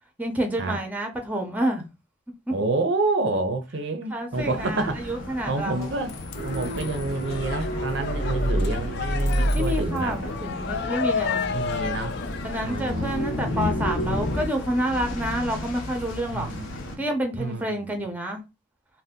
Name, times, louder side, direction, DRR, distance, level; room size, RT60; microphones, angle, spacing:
voice 1, 0.2-1.8 2.5-2.6 4.1-5.9 9.5-11.6 12.4-16.5 17.0-18.4, right 1 dB, 10° right, 0.6 m, -28 dB
voice 2, 2.5-5.1 5.5-6.2 6.4-10.2 11.5-12.2 12.6-13.6 16.3-17.1 17.4-18.1, right 3 dB, 65° right, 0.5 m, -29 dB
sound 1, 4.3-17.0, left 1 dB, 80° left, 0.7 m, -37 dB
sound 2, 5.8-16.8, left 6 dB, 55° left, 0.3 m, -34 dB
sound 3, 6.3-14.5, equal, 40° left, 0.8 m, -29 dB
2.7 x 2.1 x 3.5 m
head